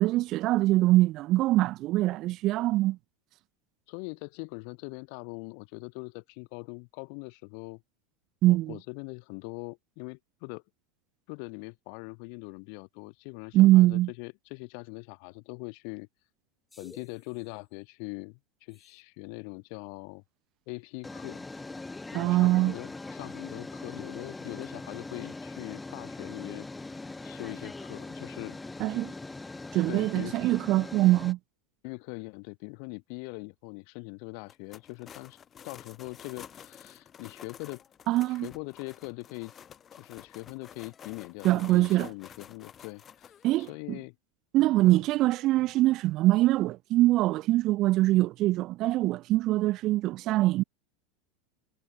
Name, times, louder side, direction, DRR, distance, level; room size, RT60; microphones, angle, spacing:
voice 1, 0.0-3.0 8.4-8.8 13.5-14.1 22.1-22.7 28.8-29.1 29.7-31.4 38.1-38.5 41.4-42.1 43.4-44.0 44.5-50.6, right 17 dB, 50° right, 0.5 m, -23 dB
voice 2, 3.9-7.8 8.4-10.6 11.3-16.1 16.8-20.2 20.7-21.4 22.1-28.6 29.9-30.4 31.8-35.4 35.6-37.8 38.3-39.5 40.0-44.1 44.8-45.0, left 40 dB or more, 60° left, 3.1 m, -42 dB
sound 1, 16.7-17.1 18.8-18.9 21.0-31.3, left 3 dB, 10° left, 0.6 m, -41 dB
sound 2, 34.4-43.7, left 8 dB, 30° left, 6.0 m, -50 dB
hypercardioid pair, 100°, 0 cm